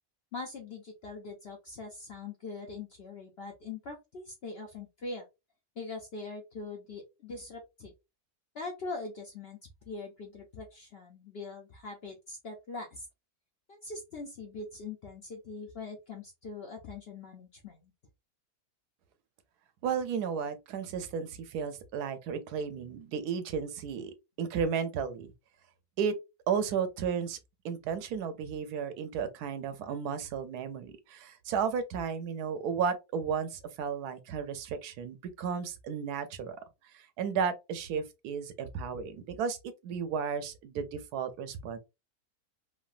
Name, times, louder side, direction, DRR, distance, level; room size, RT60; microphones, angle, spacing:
voice 1, 0.3-5.2 5.8-7.9 8.5-9.6 9.9-13.1 13.7-17.9 22.7-22.9 24.0-24.1, left 3 dB, 65° left, 0.6 m, -42 dB
voice 2, 19.8-25.3 26.0-26.1 26.5-27.4 27.6-36.6 36.9-41.8, right 6 dB, 90° right, 1.1 m, -33 dB
3.2 x 2.2 x 2.4 m
omnidirectional pair, 1.6 m